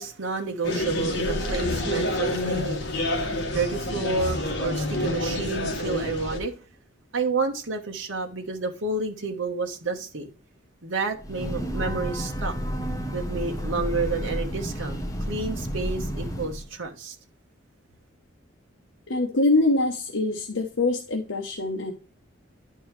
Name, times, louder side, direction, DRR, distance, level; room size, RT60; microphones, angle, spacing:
voice 1, 0.0-6.6 7.1-10.3 10.8-12.5 13.1-15.0 15.3-17.2, right 4 dB, 75° right, 1.2 m, -30 dB
sound 1, 0.6-6.4, left 1 dB, 55° left, 1.6 m, -28 dB
Breathing / Train, 11.2-16.7, equal, 15° left, 0.9 m, -31 dB
voice 2, 19.1-21.9, left 2 dB, 75° left, 1.0 m, -24 dB
10.5 x 4.7 x 3.2 m
head